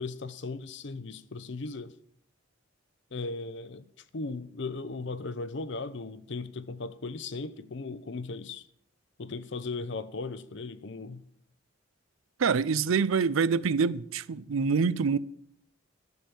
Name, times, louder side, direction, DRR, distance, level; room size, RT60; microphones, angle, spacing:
voice 1, 0.0-1.9 3.1-3.9 4.1-8.6 9.2-11.2, left 3 dB, 60° left, 0.7 m, -37 dB
voice 2, 12.4-15.2, right 5 dB, 85° right, 0.5 m, -26 dB
12.0 x 7.3 x 6.9 m
head